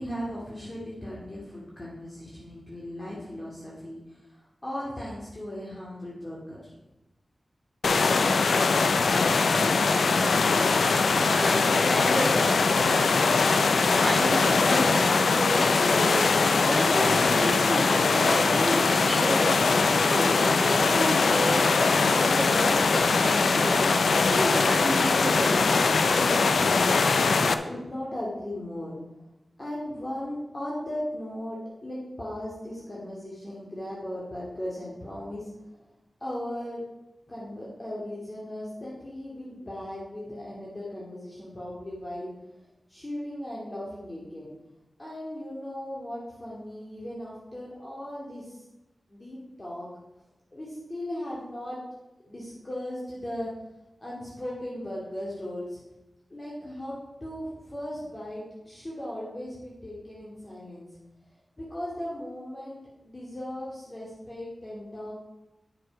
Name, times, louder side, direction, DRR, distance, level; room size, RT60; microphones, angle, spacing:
voice 1, 0.0-6.8 27.2-29.3 29.6-35.9 36.2-36.8 37.3-42.3 42.9-44.5 45.0-48.7 49.1-49.9 50.5-51.8 52.3-53.5 54.0-55.8 56.3-60.9 61.6-65.2, left 1 dB, 30° left, -6 dB, 2.4 m, -37 dB
sound 1, 7.8-27.5, left 4 dB, 85° left, 0.5 m, -22 dB
voice 2, 11.2-25.7, right 1 dB, 15° right, 1 dB, 1.9 m, -32 dB
9.7 x 6.6 x 5.2 m, 0.99 s
wide cardioid pair, 85°, 0 cm